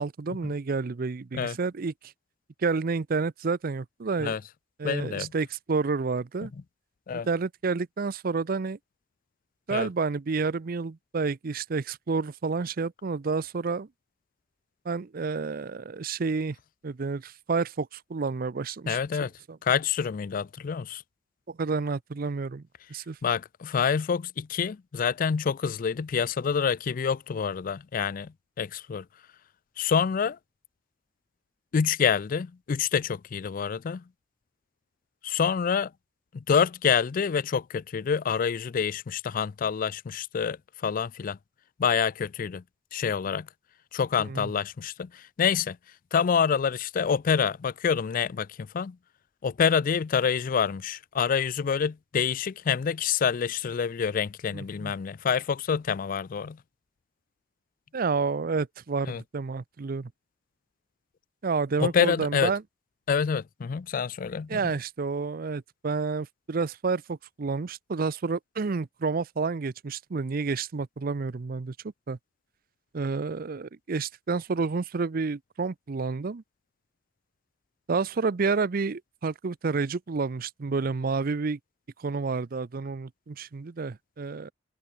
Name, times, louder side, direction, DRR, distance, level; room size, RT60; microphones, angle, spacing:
voice 1, 0.0-2.1 2.6-4.4 4.8-6.5 7.1-8.8 9.7-13.9 14.9-16.6 16.8-19.0 19.5-19.6 21.5-22.6 22.9-23.2 44.2-44.5 54.5-54.9 57.9-60.1 61.4-62.6 64.5-71.7 72.1-72.2 72.9-76.4 77.9-81.6 82.0-84.5, right 4 dB, 50° right, 0.5 m, -29 dB
voice 2, 4.8-5.3 7.1-7.3 9.7-9.9 18.9-19.3 19.6-21.0 23.2-28.3 28.6-29.0 29.8-30.4 31.7-34.0 35.2-35.9 36.3-40.6 40.8-41.4 41.8-42.6 42.9-43.5 43.9-45.8 46.1-49.0 49.4-56.6 59.1-59.2 61.8-62.5 63.1-64.6, left 6 dB, 45° left, 0.4 m, -27 dB
head